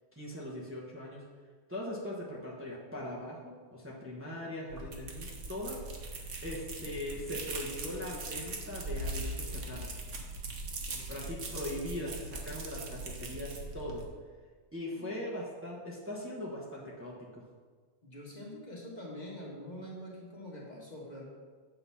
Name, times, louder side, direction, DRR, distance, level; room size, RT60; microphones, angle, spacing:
voice 1, 0.1-1.2 1.7-5.9 6.1-9.9 11.1-14.0 14.7-17.4, left 1 dB, 10° right, -5 dB, 1.1 m, -40 dB
sound 1, 4.7-14.1, right 2 dB, 80° right, 1.3 m, -40 dB
voice 2, 10.9-11.5 15.0-15.3 18.0-21.2, equal, 35° left, -4 dB, 1.4 m, -45 dB
8.0 x 3.9 x 5.5 m, 1.5 s
omnidirectional pair, 1.3 m